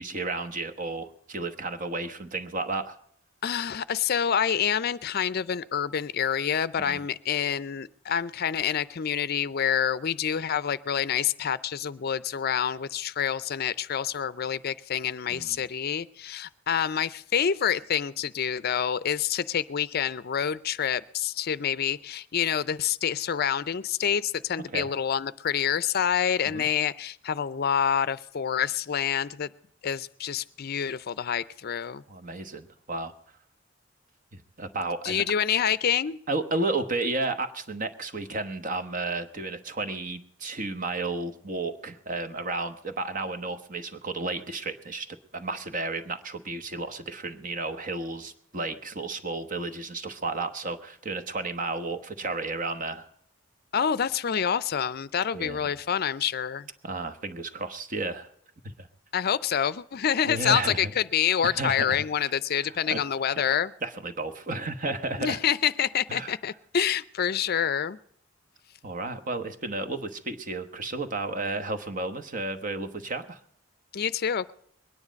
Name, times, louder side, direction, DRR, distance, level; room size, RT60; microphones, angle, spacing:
voice 1, 0.0-3.0 6.8-7.0 15.3-15.6 24.7-24.9 26.4-26.7 32.1-33.1 34.3-35.2 36.3-53.1 55.3-55.6 56.8-58.3 58.6-58.9 60.2-60.9 61.4-62.3 62.6-63.0 63.8-65.4 66.1-66.3 68.8-73.4, right 3 dB, 45° right, 9 dB, 1.1 m, -32 dB
voice 2, 3.4-29.5 29.8-32.0 35.0-36.2 53.7-56.7 59.1-63.7 65.2-68.0 73.9-74.5, left 8 dB, 50° left, 17 dB, 0.5 m, -27 dB
21.5 x 9.8 x 5.1 m, 0.70 s
head